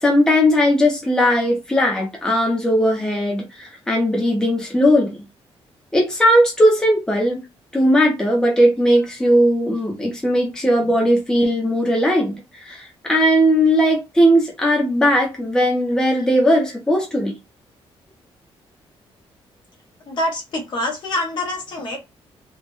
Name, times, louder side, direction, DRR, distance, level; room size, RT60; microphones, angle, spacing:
voice 1, 0.0-5.2 5.9-7.4 7.7-17.3, equal, 5° left, 0.9 m, -18 dB
voice 2, 20.1-22.0, left 1 dB, 50° left, 1.1 m, -25 dB
3.4 x 2.5 x 2.5 m
wide cardioid pair, 170°, 10 cm